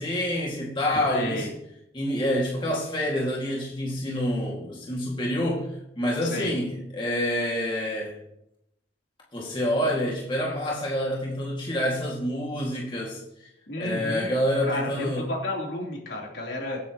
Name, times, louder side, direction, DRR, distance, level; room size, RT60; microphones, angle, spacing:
voice 1, 0.0-1.5 1.9-8.2 9.3-13.5 13.8-15.3, equal, 25° left, 2.2 m, -27 dB
voice 2, 1.1-1.5 6.2-6.5 13.7-14.3 14.7-16.8, left 1 dB, 70° left, 3.5 m, -31 dB
25.0 x 8.5 x 3.1 m
head